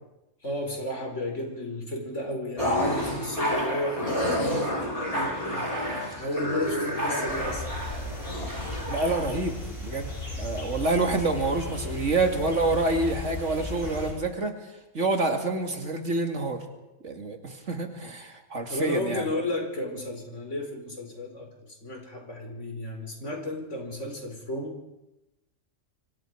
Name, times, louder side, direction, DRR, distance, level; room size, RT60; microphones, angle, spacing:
voice 1, 0.4-7.8 18.7-24.8, left 1 dB, 70° left, 2 dB, 4.9 m, -33 dB
sound 1, 2.6-9.4, equal, 25° left, 7.1 m, -29 dB
sound 2, 7.3-14.1, left 1 dB, 45° left, 6.3 m, -36 dB
voice 2, 8.9-9.5 9.8-10.1 10.4-14.5 14.9-16.6 17.0-19.2, right 2 dB, 70° right, 4 dB, 2.7 m, -27 dB
26.5 x 25.0 x 4.7 m, 0.95 s
omnidirectional pair, 1.3 m